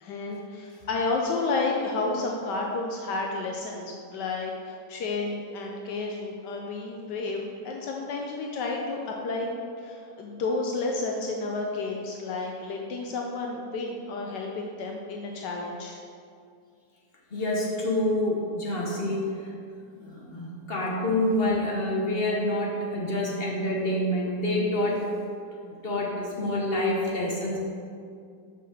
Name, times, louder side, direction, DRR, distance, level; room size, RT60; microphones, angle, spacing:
voice 1, 0.0-9.5 9.8-16.0, left 3 dB, 75° left, 0 dB, 1.3 m, -31 dB
voice 2, 17.3-19.3 20.0-25.0 25.8-27.6, left 1 dB, 40° left, -2 dB, 1.1 m, -27 dB
5.7 x 5.4 x 6.4 m, 2.3 s
omnidirectional pair, 1.9 m